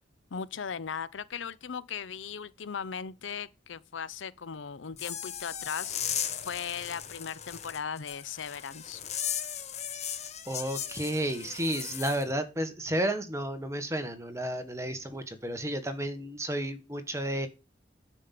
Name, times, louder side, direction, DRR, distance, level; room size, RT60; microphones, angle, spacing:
voice 1, 0.3-6.0 6.4-9.0, left 6 dB, 90° left, 0.6 m, -38 dB
sound 1, 4.9-12.2, left 9 dB, 35° left, 1.1 m, -37 dB
voice 2, 10.5-17.5, right 1 dB, 15° right, 1.4 m, -32 dB
9.7 x 5.4 x 7.6 m
head